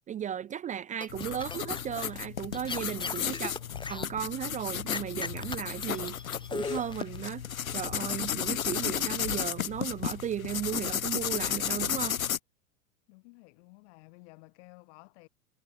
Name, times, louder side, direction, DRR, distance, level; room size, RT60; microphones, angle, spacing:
voice 1, 0.1-3.5 3.9-6.2 6.5-7.4 7.7-12.2, right 9 dB, 20° right, 0.6 m, -35 dB
sound 1, 1.0-2.1 2.5-4.0 4.9-7.3, left 4 dB, 10° left, 2.4 m, -37 dB
sound 2, 1.1-12.4, left 9 dB, 85° left, 2.3 m, -33 dB
voice 2, 13.1-15.3, left 30 dB, 55° left, 7.2 m, -54 dB
hypercardioid pair, 105°, 40 cm